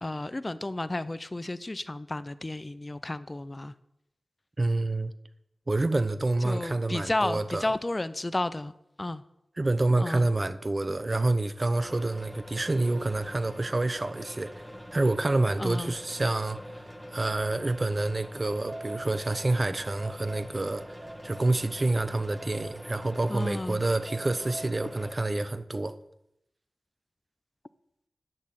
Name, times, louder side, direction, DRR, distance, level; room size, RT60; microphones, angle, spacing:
voice 1, 0.0-3.7 6.4-8.7 9.0-9.2 10.0-10.3 15.6-15.9 23.3-23.8, left 2 dB, 30° left, 0.6 m, -32 dB
voice 2, 4.6-5.1 5.7-7.6 9.6-14.7 14.9-16.6 17.1-25.9, right 2 dB, 40° right, 0.8 m, -28 dB
sound 1, 11.7-25.1, equal, ahead, 1.4 m, -44 dB
sound 2, 18.4-25.5, right 1 dB, 60° right, 4.5 m, -46 dB
10.5 x 6.5 x 7.6 m
cardioid pair, 40°, 0 cm